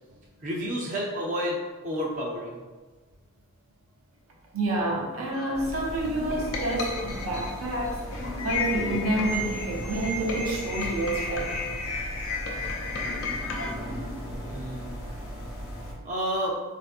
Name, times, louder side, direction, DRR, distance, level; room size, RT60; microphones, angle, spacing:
voice 1, 0.4-2.6 14.5-15.0 16.0-16.5, equal, 35° right, -4 dB, 0.6 m, -30 dB
voice 2, 4.5-8.1 8.4-11.6, right 1 dB, 70° right, -1 dB, 0.7 m, -29 dB
sound 1, 5.3-13.7, left 3 dB, 70° left, 0.5 m, -33 dB
sound 2, 5.5-15.9, equal, 45° left, 0.8 m, -37 dB
4.4 x 2.6 x 2.5 m, 1.3 s
head